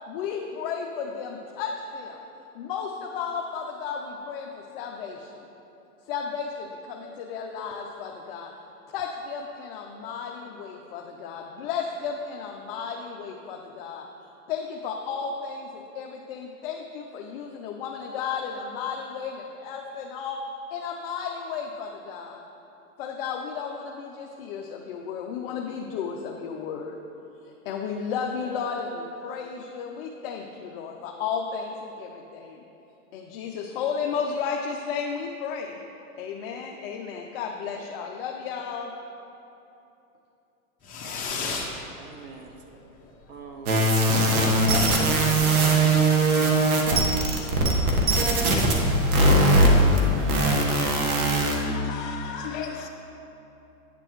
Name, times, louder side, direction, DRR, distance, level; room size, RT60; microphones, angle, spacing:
voice 1, 0.1-2.2 2.5-5.4 6.1-8.5 8.9-14.1 14.5-20.4 20.7-22.4 23.0-27.0 27.4-32.6 33.1-35.8 36.2-38.9, left 6 dB, 40° left, 1 dB, 0.5 m, -33 dB
Fireworks, 40.8-41.8 42.1-42.7 42.9-43.0 43.3-43.4 43.6-43.7 44.0-45.6, left 3 dB, 20° left, 0.8 m, -34 dB
voice 2, 41.0-42.5 43.3-43.9 44.1-45.8, right 4 dB, 35° right, 3 dB, 0.5 m, -44 dB
sound 1, 43.7-51.6, right 1 dB, 75° right, 1.4 m, -20 dB
voice 3, 51.3-52.9, left 7 dB, 60° left, 3 dB, 1.1 m, -35 dB
9.7 x 6.8 x 3.0 m, 2.9 s
supercardioid pair, 145°, 44 cm